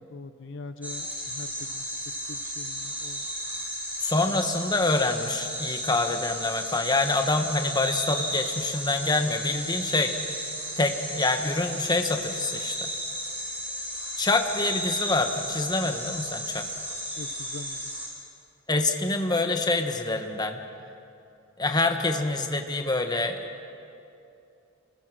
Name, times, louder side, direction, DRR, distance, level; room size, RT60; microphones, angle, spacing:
voice 1, 0.0-1.8 2.3-3.3 4.3-4.4 17.2-17.9, left 3 dB, 65° left, 10 dB, 0.7 m, -42 dB
sound 1, 0.8-18.1, equal, 10° right, 4.5 m, -34 dB
voice 2, 4.0-10.1 10.8-12.9 14.2-16.6 18.7-20.6 21.6-23.4, left 2 dB, 20° left, 5 dB, 1.4 m, -26 dB
28.0 x 20.5 x 6.4 m, 2.7 s
head